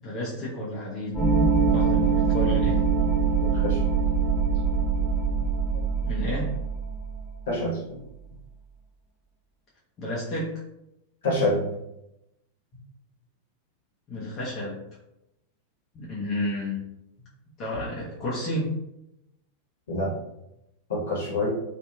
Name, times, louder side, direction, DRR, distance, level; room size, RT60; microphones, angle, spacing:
voice 1, 0.0-1.3 1.7-2.9 6.0-6.6 10.0-10.6 14.1-14.9 15.9-16.8 17.6-18.8, left 1 dB, 30° left, -6 dB, 0.7 m, -31 dB
sound 1, 1.1-7.2, right 5 dB, 5° right, 1.5 m, -23 dB
voice 2, 3.4-3.8 5.3-5.4 7.5-8.0 11.2-11.7 19.9-20.1 20.9-21.5, left 1 dB, 60° left, -4 dB, 1.1 m, -27 dB
2.8 x 2.5 x 2.3 m, 0.86 s
figure-of-eight pair, 90°, 0 cm